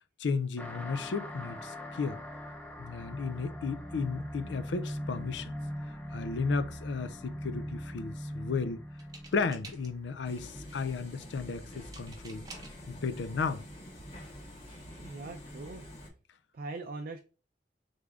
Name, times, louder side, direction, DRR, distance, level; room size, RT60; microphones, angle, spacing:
voice 1, 0.2-2.2 2.8-5.6 6.1-8.8 9.3-12.5 12.9-13.7, left 4 dB, 75° left, 0.4 m, -34 dB
sound 1, 0.6-11.6, equal, 10° left, 0.6 m, -42 dB
sound 2, 9.0-10.1 11.9-12.9 13.8-13.9 14.3-14.5, right 3 dB, 20° right, 0.8 m, -50 dB
sound 3, 10.2-16.1, equal, 30° left, 1.7 m, -47 dB
voice 2, 15.0-15.9 16.5-17.2, right 3 dB, 55° right, 0.4 m, -41 dB
3.6 x 3.4 x 3.6 m
head